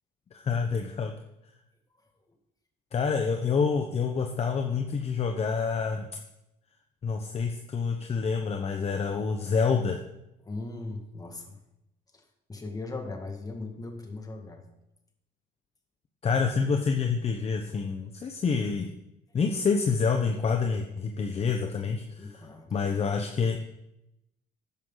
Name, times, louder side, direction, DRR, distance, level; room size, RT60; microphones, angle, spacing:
voice 1, 0.3-1.1 2.9-6.1 7.0-10.0 16.2-18.9 19.3-22.3 22.7-23.6, left 5 dB, 35° left, 4 dB, 1.0 m, -27 dB
voice 2, 10.4-11.6 12.1-14.7 22.2-22.9, left 3 dB, 20° left, 4 dB, 2.2 m, -39 dB
12.5 x 10.0 x 4.0 m, 0.86 s
cardioid pair, 110°, 17 cm